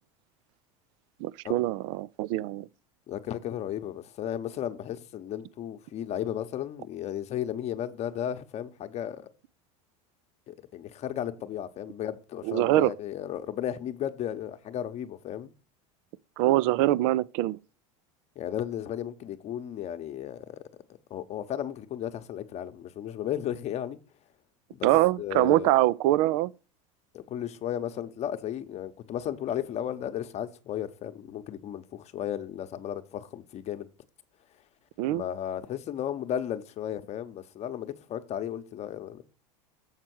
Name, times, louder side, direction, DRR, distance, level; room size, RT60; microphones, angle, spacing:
voice 1, 1.2-2.7 12.4-12.9 16.4-17.6 24.8-26.5 35.0-35.2, right 16 dB, 65° right, 0.4 m, -24 dB
voice 2, 3.1-9.3 10.5-15.5 18.4-20.6 21.1-24.0 24.7-24.9 25.2-25.7 27.1-33.9 35.1-39.2, left 10 dB, 40° left, 0.9 m, -34 dB
7.4 x 4.5 x 6.1 m
supercardioid pair, 115°, 17 cm